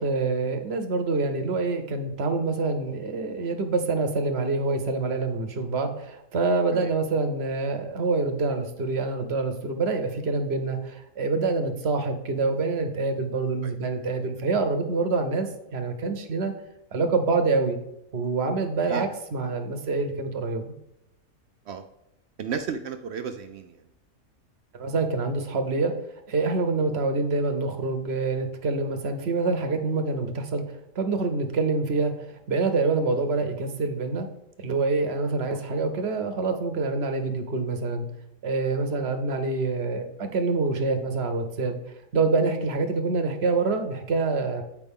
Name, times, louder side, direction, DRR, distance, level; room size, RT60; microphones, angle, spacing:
voice 1, 0.0-16.5 16.9-17.8 18.1-20.7 24.7-25.9 26.3-34.3 34.6-38.1 38.4-41.8 42.1-44.6, right 3 dB, 50° right, 6 dB, 1.0 m, -26 dB
voice 2, 22.4-23.8 35.5-35.6, right 6 dB, 65° right, 8 dB, 0.6 m, -33 dB
8.4 x 5.0 x 3.6 m, 0.85 s
omnidirectional pair, 1.5 m